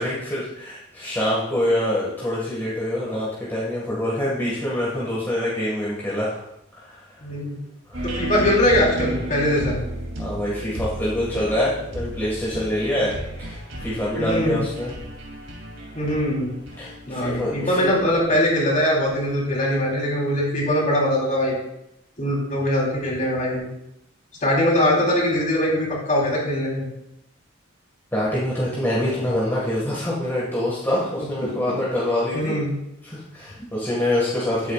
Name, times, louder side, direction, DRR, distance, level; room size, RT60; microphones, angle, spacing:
voice 1, 0.0-6.4 6.8-7.0 7.9-8.1 10.2-13.1 13.4-14.9 16.8-17.9 28.1-32.5 33.0-34.7, left 1 dB, 10° left, -7 dB, 1.9 m, -25 dB
voice 2, 7.2-7.6 8.0-9.8 13.0-13.1 14.2-14.6 15.9-16.5 17.1-21.6 22.2-23.7 24.4-26.9 31.4-31.5 32.3-32.7, left 1 dB, 40° left, -4 dB, 3.8 m, -22 dB
sound 1, 7.9-19.7, equal, 80° right, 3.1 m, -33 dB
13.0 x 8.4 x 2.5 m, 0.83 s
head